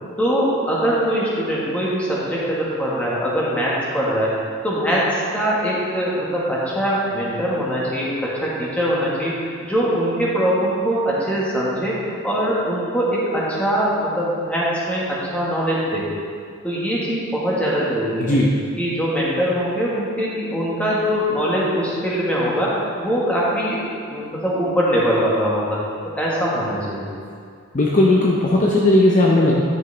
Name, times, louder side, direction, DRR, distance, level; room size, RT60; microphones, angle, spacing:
voice 1, 0.2-4.3 4.6-9.4 9.6-16.1 16.6-18.4 18.8-23.8 24.1-25.8 26.2-27.1, equal, 5° left, -7 dB, 1.5 m, -22 dB
voice 2, 18.2-18.5 27.7-29.6, left 1 dB, 35° left, -4 dB, 0.6 m, -16 dB
9.5 x 6.1 x 3.3 m, 2.2 s
head